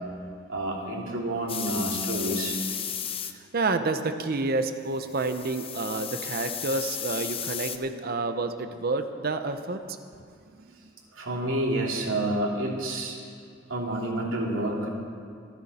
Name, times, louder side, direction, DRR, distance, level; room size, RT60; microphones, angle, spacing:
voice 1, 0.5-2.6 11.1-13.2 13.7-14.9, right 1 dB, 75° right, -2 dB, 2.9 m, -29 dB
sound 1, 1.5-3.3 5.1-7.8, left 8 dB, 30° left, 0.7 m, -34 dB
voice 2, 3.5-9.8, right 3 dB, 50° right, 8 dB, 0.7 m, -29 dB
25.5 x 10.5 x 4.3 m, 2.3 s
head